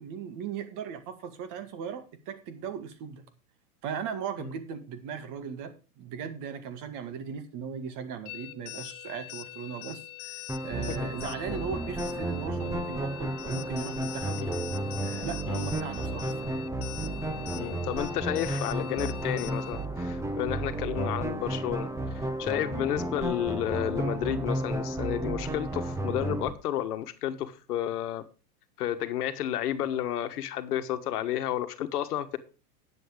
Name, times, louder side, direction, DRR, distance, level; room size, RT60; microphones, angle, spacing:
voice 1, 0.0-3.3 3.8-14.6 15.0-16.6, right 7 dB, 40° right, 10 dB, 2.0 m, -38 dB
sound 1, 8.3-19.9, left 18 dB, 25° left, 0.5 m, -43 dB
sound 2, 10.5-26.5, right 1 dB, 5° right, 1.0 m, -32 dB
voice 2, 10.8-11.2 11.5-11.7 14.4-14.5 15.5-15.7 17.5-28.2 28.8-32.4, left 11 dB, 75° left, 11 dB, 1.5 m, -31 dB
10.0 x 7.6 x 5.0 m, 0.34 s
hypercardioid pair, 125°, 46 cm